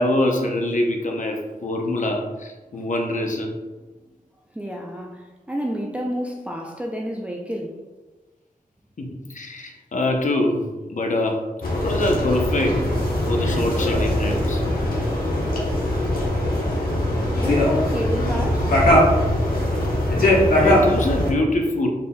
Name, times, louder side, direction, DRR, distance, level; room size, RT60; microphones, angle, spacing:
voice 1, 0.0-3.5 9.0-11.4 11.7-12.8 13.3-14.6 20.6-21.9, left 1 dB, 55° left, 1 dB, 0.7 m, -24 dB
voice 2, 4.5-7.8 17.4-18.8, equal, 10° right, 0 dB, 0.4 m, -29 dB
sound 1, 11.6-21.3, left 1 dB, 75° left, 1.0 m, -21 dB
3.9 x 3.7 x 2.2 m, 1.2 s
wide cardioid pair, 75°, 15 cm